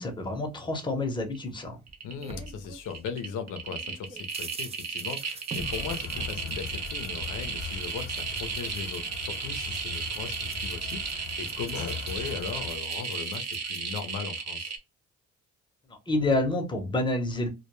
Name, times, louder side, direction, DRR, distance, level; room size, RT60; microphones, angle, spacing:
voice 1, 0.0-1.8 15.9-17.5, left 2 dB, 15° left, 0.7 m, -28 dB
sound 1, 1.3-1.6 1.9-2.5 2.8-14.8, right 5 dB, 55° right, 0.8 m, -34 dB
sound 2, 1.5-3.3 3.7-14.2, right 4 dB, 20° right, 0.4 m, -47 dB
voice 2, 2.0-14.7, left 6 dB, 85° left, 0.5 m, -38 dB
sound 3, 5.6-12.8, left 5 dB, 50° left, 0.9 m, -40 dB
2.2 x 2.1 x 2.9 m
cardioid pair, 90°, 30 cm